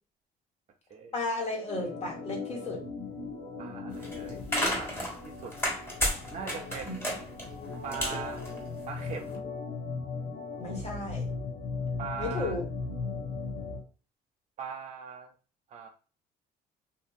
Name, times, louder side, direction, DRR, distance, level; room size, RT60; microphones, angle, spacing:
voice 1, 1.1-2.8 6.8-7.1 10.6-11.2 12.2-12.7, left 2 dB, 40° left, 0 dB, 1.2 m, -34 dB
Organ, 1.7-13.8, left 4 dB, 80° left, 0.9 m, -38 dB
voice 2, 3.6-4.4 4.8-5.6 6.3-7.1 7.8-8.4 8.9-9.4 12.0-12.6 14.6-15.3 15.7-15.9, right 6 dB, 45° right, 2 dB, 0.5 m, -40 dB
sound 1, 3.9-9.2, equal, 15° left, 1.4 m, -33 dB
2.7 x 2.6 x 2.3 m, 0.36 s
cardioid pair, 110°, 17 cm